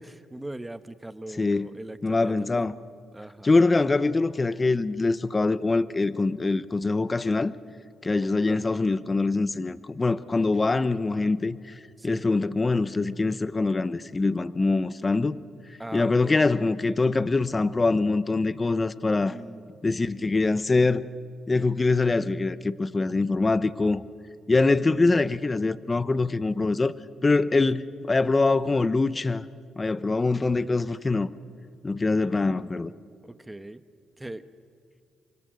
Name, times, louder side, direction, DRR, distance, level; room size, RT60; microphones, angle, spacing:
voice 1, 0.0-2.7 3.1-3.5 8.5-8.6 12.0-12.3 15.8-16.4 19.3-19.7 27.5-27.7 33.2-33.8 34.2-34.4, right 1 dB, 15° right, 1.2 m, -40 dB
voice 2, 1.4-1.7 2.0-2.7 3.4-7.5 8.0-15.4 15.9-19.3 19.8-21.0 21.5-24.0 24.5-26.9 27.2-29.5 29.8-31.3 31.8-32.9, left 3 dB, 30° left, 0.9 m, -24 dB
28.5 x 24.5 x 6.4 m
supercardioid pair, 55°, 0 cm